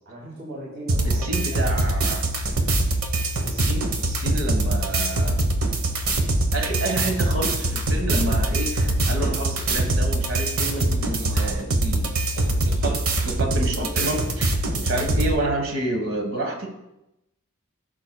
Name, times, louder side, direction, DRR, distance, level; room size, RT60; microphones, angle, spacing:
voice 1, 0.0-1.9 11.2-11.6, right 1 dB, 50° right, -6 dB, 2.9 m, -39 dB
sound 1, 0.9-15.3, right 2 dB, 85° right, 1.1 m, -23 dB
voice 2, 1.0-2.3 3.4-5.5 6.5-16.7, right 1 dB, 70° right, 4 dB, 1.3 m, -29 dB
14.5 x 6.1 x 2.3 m, 0.89 s
head